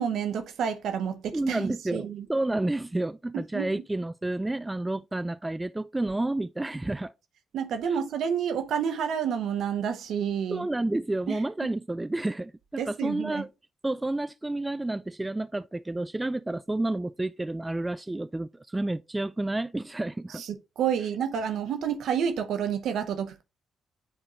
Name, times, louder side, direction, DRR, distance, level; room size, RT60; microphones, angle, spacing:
voice 1, 0.0-2.3 3.5-3.7 7.5-10.7 11.3-11.7 12.8-13.4 20.3-23.4, right 8 dB, 65° right, 0.9 m, -29 dB
voice 2, 1.3-7.1 7.9-8.0 10.5-13.5 13.8-20.4, right 2 dB, 15° right, 0.3 m, -30 dB
9.5 x 3.5 x 2.9 m
figure-of-eight pair, 40°, 0 cm